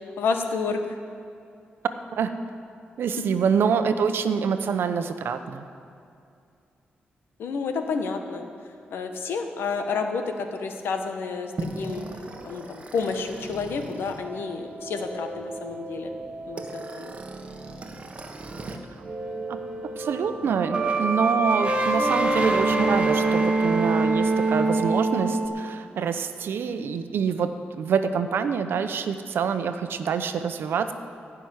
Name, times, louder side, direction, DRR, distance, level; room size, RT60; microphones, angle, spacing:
voice 1, 0.2-0.8 7.4-8.5 8.9-11.5 11.8-12.0 12.4-16.1 16.5-17.1, left 4 dB, 90° left, 5 dB, 1.2 m, -30 dB
voice 2, 3.0-5.6 18.7-18.8 19.5-19.6 20.0-30.9, right 6 dB, 80° right, 9 dB, 0.8 m, -26 dB
sound 1, 11.6-18.8 19.0-25.5, right 2 dB, 35° right, 1.3 m, -27 dB
16.0 x 6.1 x 9.5 m, 2.5 s
cardioid pair, 105°, 4 cm